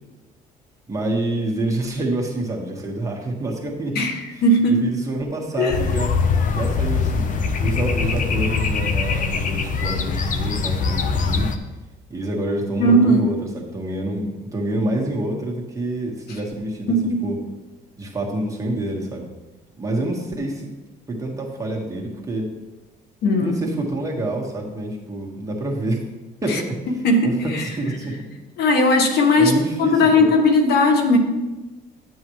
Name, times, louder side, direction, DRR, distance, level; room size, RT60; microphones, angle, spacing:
voice 1, 0.9-6.1 6.5-11.5 12.1-17.0 17.2-17.4 18.0-19.3 19.7-20.7 21.1-22.5 23.4-26.0 26.4-28.2 29.4-30.3, right 1 dB, 20° right, -2 dB, 1.6 m, -27 dB
voice 2, 4.4-4.9 5.6-5.8 12.8-13.3 16.9-17.2 23.2-23.6 26.5-26.6 27.0-27.6 28.6-31.2, left 1 dB, 70° left, 4 dB, 1.4 m, -17 dB
sound 1, 5.7-11.6, left 5 dB, 50° left, 0.8 m, -22 dB
11.5 x 7.8 x 3.2 m, 1.1 s
cardioid pair, 110°, 17 cm